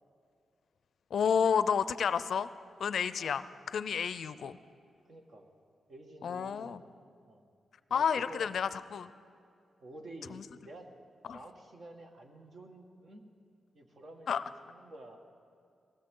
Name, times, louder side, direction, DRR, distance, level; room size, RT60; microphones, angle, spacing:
voice 1, 1.1-2.5 2.8-3.4 3.7-4.6 6.2-6.8 7.9-9.1 10.3-10.4 11.3-11.4 14.3-14.4, left 7 dB, 70° left, 15 dB, 0.4 m, -30 dB
voice 2, 5.1-5.5 5.9-6.9 7.3-7.4 7.9-8.5 9.8-10.9 11.3-13.3 13.7-15.2, right 1 dB, 50° right, 3 dB, 1.7 m, -50 dB
18.5 x 16.0 x 3.8 m, 2.3 s
cardioid pair, 85°, 0 cm